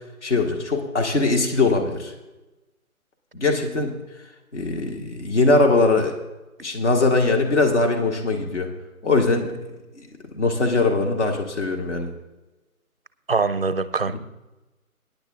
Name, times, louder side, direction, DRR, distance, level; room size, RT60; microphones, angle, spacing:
voice 1, 0.2-2.1 3.3-3.9 4.5-6.1 6.6-8.7 9.0-9.5 10.0-10.1 10.3-12.1, left 3 dB, 50° left, 3 dB, 1.9 m, -21 dB
voice 2, 13.3-14.2, right 4 dB, 45° right, 12 dB, 0.5 m, -23 dB
21.0 x 10.0 x 2.4 m, 1.1 s
figure-of-eight pair, 170°, 44 cm